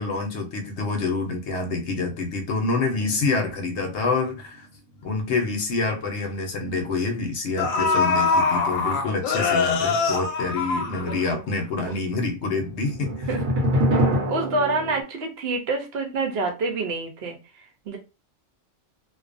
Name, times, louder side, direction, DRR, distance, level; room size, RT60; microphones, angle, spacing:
voice 1, 0.0-4.7 5.0-13.3, left 3 dB, 65° left, 0.9 m, -27 dB
sound 1, 2.9-4.6 5.0-5.1 12.4-15.0, equal, 85° right, 1.1 m, -26 dB
sound 2, 6.0-6.1 7.1-7.2 7.6-11.5 11.8-11.9, left 4 dB, 90° left, 1.1 m, -23 dB
voice 2, 7.6-8.0 11.0-11.4 13.3-13.6 14.3-18.0, right 3 dB, 55° right, 0.8 m, -28 dB
2.5 x 2.2 x 2.5 m
omnidirectional pair, 1.4 m